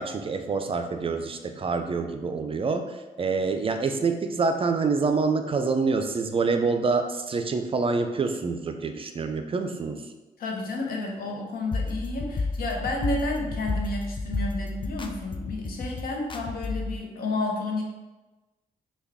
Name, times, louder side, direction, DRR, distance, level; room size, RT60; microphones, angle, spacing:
voice 1, 0.0-10.0, right 4 dB, 35° right, 6 dB, 0.4 m, -26 dB
voice 2, 10.4-17.8, left 2 dB, 70° left, 1 dB, 0.8 m, -31 dB
sound 1, 11.7-17.0, left 3 dB, 30° left, 0.4 m, -31 dB
3.4 x 2.3 x 3.4 m, 1.1 s
supercardioid pair, 60°, 16 cm